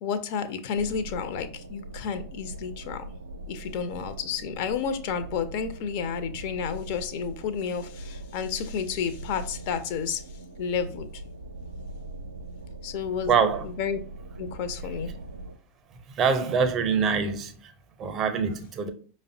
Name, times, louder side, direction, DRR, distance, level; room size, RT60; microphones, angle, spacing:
voice 1, 0.0-3.0 3.5-10.2 10.6-11.1 12.8-13.4 13.6-14.0 14.4-15.1, left 6 dB, 50° left, 0.4 m, -31 dB
sound 1, 0.7-15.6, right 2 dB, 80° right, 0.3 m, -41 dB
voice 2, 13.3-13.7 16.1-17.7 18.0-18.9, right 6 dB, 30° right, 0.5 m, -24 dB
5.0 x 2.1 x 2.6 m
figure-of-eight pair, 85°, 0 cm